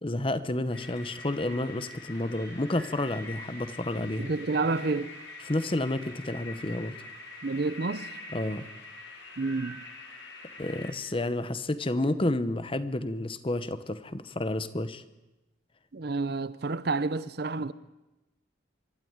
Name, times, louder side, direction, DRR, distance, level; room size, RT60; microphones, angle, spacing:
voice 1, 0.0-4.3 5.4-7.1 8.3-8.7 10.6-15.0, left 1 dB, 25° left, 0.9 m, -30 dB
sound 1, 0.7-10.9, left 2 dB, 65° left, 4.8 m, -45 dB
voice 2, 4.2-5.1 7.4-8.1 9.4-9.8 15.9-17.7, right 3 dB, 55° right, 0.7 m, -29 dB
24.5 x 12.5 x 9.5 m
head